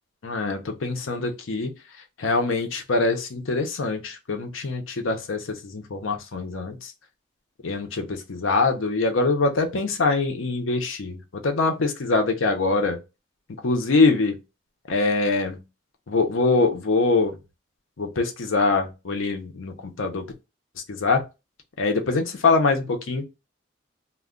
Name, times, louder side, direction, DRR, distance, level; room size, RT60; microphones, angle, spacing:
voice 1, 0.2-1.7 2.2-6.9 7.6-13.0 13.6-14.4 14.9-15.6 16.1-17.3 18.0-20.3 20.9-21.2 21.8-23.2, left 3 dB, 85° left, 0.6 m, -23 dB
2.3 x 2.1 x 3.6 m
head